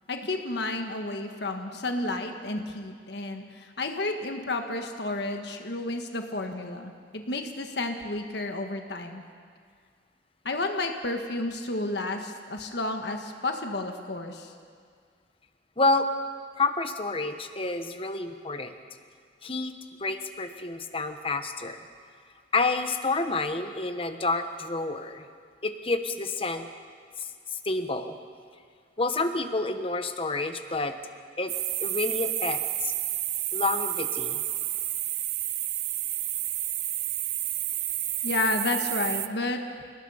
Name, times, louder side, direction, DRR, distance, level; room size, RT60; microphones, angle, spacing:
voice 1, 0.1-9.2 10.4-14.5 38.2-39.6, left 2 dB, 60° left, 4 dB, 1.5 m, -31 dB
voice 2, 15.8-16.1 16.6-18.7 19.4-19.7 20.0-21.8 22.5-25.2 25.6-26.6 27.2-28.2 29.0-31.0 31.4-31.5 31.8-32.9 33.5-34.4, left 3 dB, 30° left, 8 dB, 1.1 m, -29 dB
sound 1, 31.5-39.3, right 13 dB, 35° right, 0.5 m, -30 dB
29.0 x 19.0 x 5.7 m, 2.1 s
head